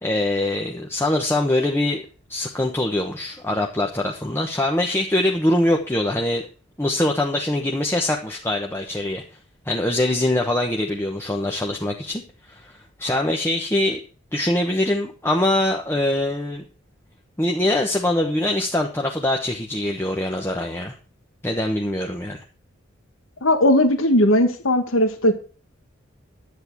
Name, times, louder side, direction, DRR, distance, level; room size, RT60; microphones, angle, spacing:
voice 1, 0.0-2.0 2.3-6.4 6.8-9.2 9.6-12.2 12.5-14.0 14.3-16.6 17.4-20.9 21.4-22.4, left 1 dB, 10° left, 2 dB, 1.1 m, -23 dB
voice 2, 23.4-25.3, left 1 dB, 85° left, 7 dB, 1.6 m, -17 dB
11.0 x 8.8 x 4.6 m, 0.37 s
head